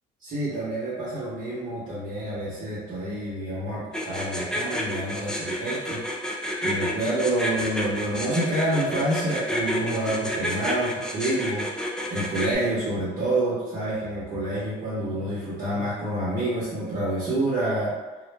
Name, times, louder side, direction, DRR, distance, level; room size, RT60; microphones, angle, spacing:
voice 1, 0.2-6.0 6.6-11.7 12.1-17.9, right 1 dB, 50° right, -8 dB, 0.8 m, -28 dB
sound 1, 3.9-12.6, equal, 5° left, 0.3 m, -29 dB
2.1 x 2.0 x 3.2 m, 1.2 s
cardioid pair, 110°, 17 cm